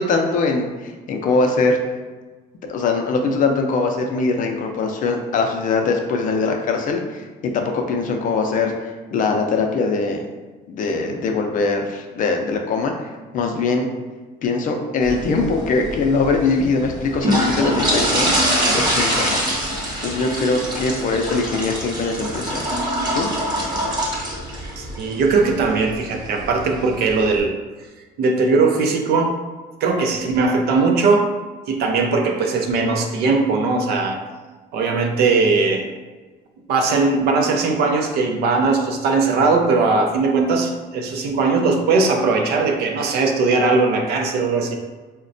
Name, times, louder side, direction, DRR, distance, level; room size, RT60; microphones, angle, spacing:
voice 1, 0.0-1.8 2.7-10.2 10.7-13.9 14.4-19.4 20.0-22.6 23.1-23.3, left 3 dB, 50° left, 3 dB, 0.5 m, -22 dB
sound 1, 15.0-27.4, equal, 25° right, 0.9 m, -24 dB
voice 2, 24.8-27.5 28.2-29.3 29.8-31.3 31.7-34.2 34.7-35.9 36.7-44.7, right 4 dB, 70° right, 3 dB, 0.5 m, -19 dB
3.9 x 2.1 x 2.5 m, 1.3 s
cardioid pair, 110°, 17 cm